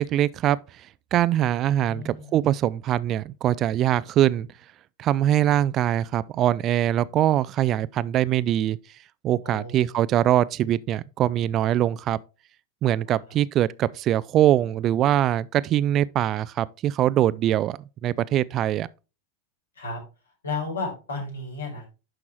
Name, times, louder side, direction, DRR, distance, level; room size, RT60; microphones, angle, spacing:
voice 1, 0.0-4.5 5.0-8.8 9.2-12.2 12.8-18.9, right 12 dB, 30° right, 0.3 m, -23 dB
voice 2, 1.4-2.3 9.4-9.8 13.1-13.2 19.7-20.0 20.4-21.9, left 3 dB, 75° left, 4.4 m, -34 dB
11.0 x 5.9 x 3.0 m
figure-of-eight pair, 90°, 0 cm